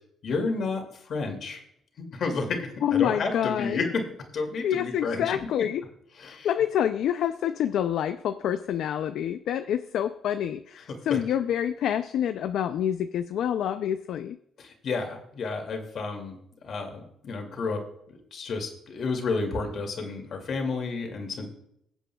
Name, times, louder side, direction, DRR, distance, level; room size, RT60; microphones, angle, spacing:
voice 1, 0.2-1.6 2.0-4.1 4.3-5.3 6.2-6.5 10.9-11.2 14.6-16.4 16.6-17.8 18.3-21.5, left 4 dB, 60° left, 2.4 m, -31 dB
voice 2, 2.8-3.9 4.6-5.8 6.2-14.4, left 10 dB, 75° left, 0.4 m, -27 dB
22.0 x 8.0 x 2.3 m
cardioid pair, 90°, 0 cm